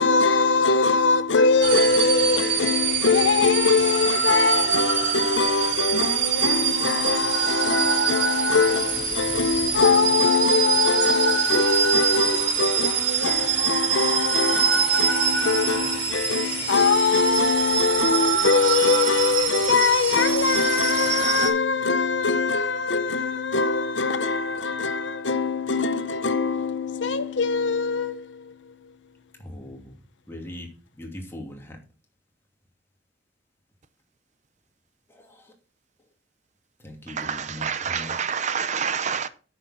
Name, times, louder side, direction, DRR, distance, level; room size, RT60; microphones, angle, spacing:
voice 1, 0.0-28.7, left 4 dB, 85° left, 0.9 m, -22 dB
sound 1, 1.6-21.5, right 6 dB, 70° right, 4.0 m, -24 dB
voice 2, 29.4-29.8 30.3-30.7 31.0-31.8 36.8-38.2, left 1 dB, 15° left, 2.7 m, -39 dB
voice 3, 37.1-39.3, right 7 dB, 40° right, 0.7 m, -28 dB
9.6 x 6.7 x 5.9 m
head